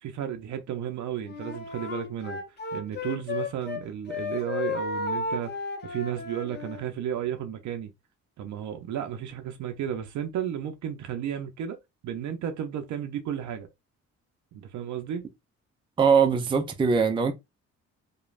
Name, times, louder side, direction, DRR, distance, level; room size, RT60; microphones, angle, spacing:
voice 1, 0.0-2.4 2.7-5.5 5.8-7.9 8.4-11.8 12.0-13.7 14.5-15.2, right 9 dB, 70° right, 0.6 m, -33 dB
Wind instrument woodwind instrument, 1.2-3.8 4.1-6.8, left 4 dB, 35° left, 0.7 m, -33 dB
voice 2, 16.0-17.3, right 6 dB, 15° right, 0.4 m, -21 dB
3.0 x 2.2 x 2.4 m
cardioid pair, 90°, 30 cm